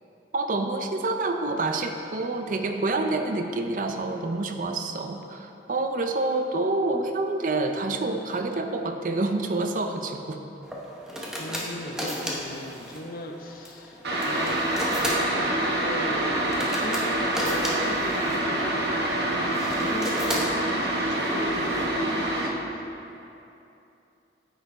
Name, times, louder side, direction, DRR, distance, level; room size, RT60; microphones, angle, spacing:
voice 1, 0.3-10.4, right 2 dB, 45° right, 6 dB, 0.4 m, -27 dB
sound 1, 10.6-21.8, equal, 5° right, 0.8 m, -35 dB
voice 2, 11.4-14.6 14.9-22.9, left 1 dB, 50° left, 3 dB, 0.6 m, -38 dB
sound 2, 14.0-22.5, right 1 dB, 70° right, 0.9 m, -26 dB
8.9 x 4.6 x 4.7 m, 2.8 s
head